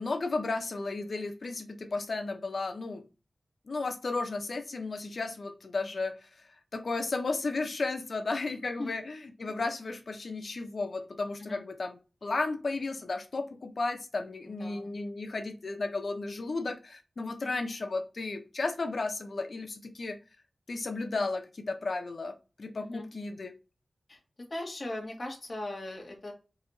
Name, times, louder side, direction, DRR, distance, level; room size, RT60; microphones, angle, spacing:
voice 1, 0.0-3.0 3.7-6.3 6.7-20.2 20.7-23.5, left 3 dB, 60° left, 7 dB, 0.7 m, -34 dB
voice 2, 14.5-15.0 17.4-17.5 22.8-23.1 24.1-24.2 24.5-26.3, left 1 dB, 40° left, 0 dB, 1.2 m, -39 dB
4.0 x 2.9 x 4.0 m, 0.31 s
wide cardioid pair, 95°, 0 cm